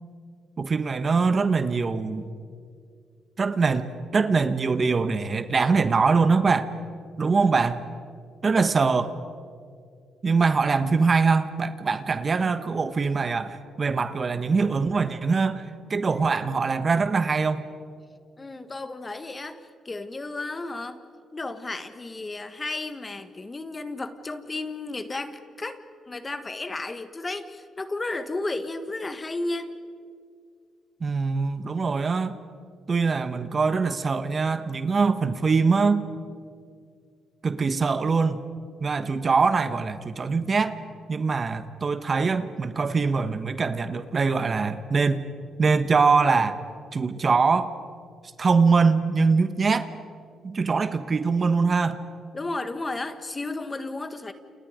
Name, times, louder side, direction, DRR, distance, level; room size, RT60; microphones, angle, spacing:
voice 1, 0.6-2.3 3.4-6.7 7.2-7.8 8.4-9.1 10.2-15.6 15.9-17.6 31.0-32.4 32.9-36.1 37.4-38.4 38.8-40.8 41.1-45.2 45.6-46.6 46.9-47.7 48.4-49.9 50.4-52.0, right 4 dB, 35° right, 11 dB, 1.2 m, -23 dB
voice 2, 18.4-21.0 21.3-29.8 52.3-54.3, left 2 dB, 25° left, 10 dB, 1.6 m, -33 dB
30.0 x 29.0 x 5.1 m, 2.2 s
cardioid pair, 95°, 0 cm